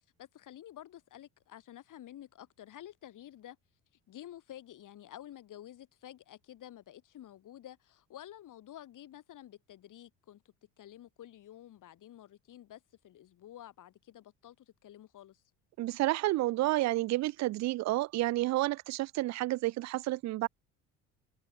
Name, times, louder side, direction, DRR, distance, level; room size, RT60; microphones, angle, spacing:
voice 1, 0.0-3.6 4.1-10.4 10.8-15.4, left 12 dB, 55° left, 4.0 m, -51 dB
voice 2, 15.8-20.5, right 17 dB, 45° right, 0.5 m, -30 dB
hypercardioid pair, 65°, 37 cm